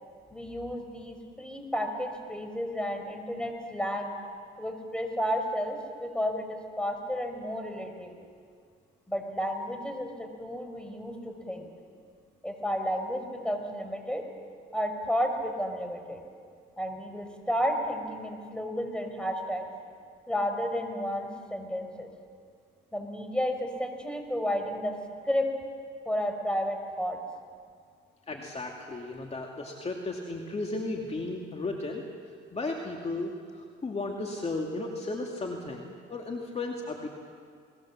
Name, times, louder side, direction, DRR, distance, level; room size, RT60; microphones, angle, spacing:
voice 1, 0.3-4.1 4.6-8.1 9.1-11.7 12.4-14.3 14.7-16.2 16.8-19.7 20.3-22.1 22.9-24.9 25.2-25.5 26.0-27.2, equal, 5° left, 5 dB, 4.7 m, -32 dB
voice 2, 28.3-32.0 32.5-37.1, left 2 dB, 30° left, 1 dB, 2.5 m, -35 dB
29.5 x 20.5 x 7.4 m, 2.1 s
cardioid pair, 90°, 20 cm